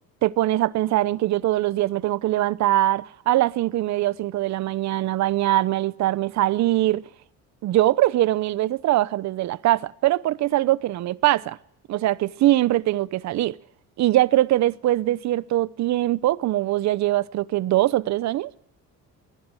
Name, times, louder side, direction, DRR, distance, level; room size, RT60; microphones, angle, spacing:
voice 1, 0.2-7.0 7.6-11.6 11.9-13.5 14.0-18.5, right 15 dB, 60° right, 0.8 m, -22 dB
22.5 x 15.5 x 9.6 m
cardioid pair, 110°, 32 cm